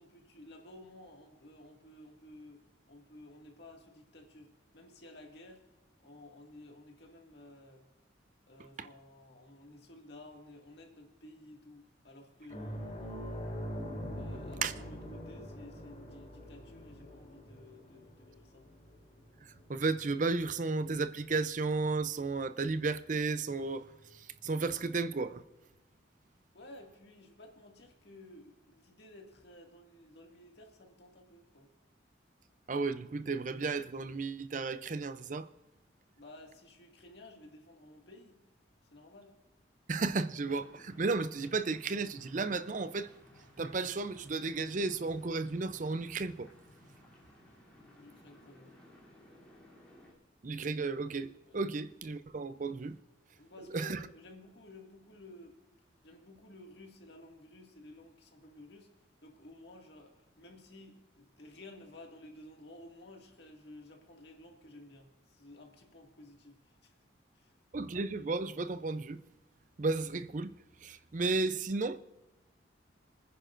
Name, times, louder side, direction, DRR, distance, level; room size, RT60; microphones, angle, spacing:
voice 1, 0.0-5.6 6.0-7.9 8.5-13.6 14.1-18.7 26.5-31.7 36.2-38.4 38.9-39.4 47.9-48.8 51.4-51.6 53.4-55.6 56.0-58.9 59.2-66.9 67.3-67.5, left 1 dB, 60° left, 2.1 m, -54 dB
sound 1, 12.5-21.4 21.8-22.0 24.0-24.1, equal, 30° left, 4.1 m, -44 dB
voice 2, 19.7-23.9 24.1-25.4 32.7-35.5 39.9-43.1 43.6-46.5 50.4-53.0 53.7-54.1 67.7-69.2 69.8-70.5 70.8-72.0, right 3 dB, 40° right, 0.5 m, -33 dB
sound 2, 40.5-50.1, left 1 dB, 5° left, 3.0 m, -59 dB
27.0 x 10.0 x 2.5 m
head